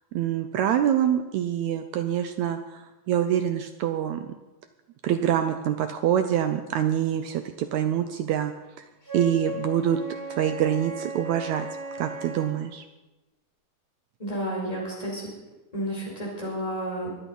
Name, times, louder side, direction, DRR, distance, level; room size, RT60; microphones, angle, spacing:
voice 1, 0.1-4.3 5.0-8.5 8.8-8.9 9.1-10.0 10.3-11.7 12.0-12.8, right 10 dB, 80° right, 8 dB, 1.6 m, -25 dB
Wind instrument woodwind instrument, 9.0-12.6, right 1 dB, 25° left, 4.2 m, -36 dB
voice 2, 14.2-15.3 15.7-17.1, equal, 10° left, -4 dB, 5.1 m, -31 dB
23.5 x 8.6 x 5.4 m, 1.1 s
omnidirectional pair, 4.0 m